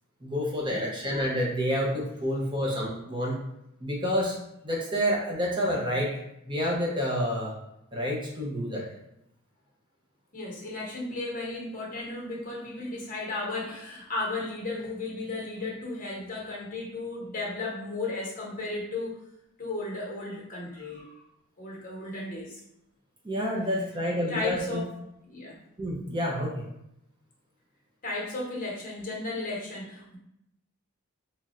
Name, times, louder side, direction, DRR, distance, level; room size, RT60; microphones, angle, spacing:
voice 1, 0.2-3.4 3.8-4.4 4.6-6.1 6.4-7.5 7.9-8.8 23.2-24.8 25.8-26.7, equal, 20° right, -2 dB, 0.6 m, -28 dB
voice 2, 10.3-19.2 19.6-21.2 21.6-22.6 24.0-24.9 25.2-25.6 28.0-30.2, left 2 dB, 40° left, -3 dB, 1.0 m, -35 dB
3.1 x 2.4 x 4.1 m, 0.80 s
head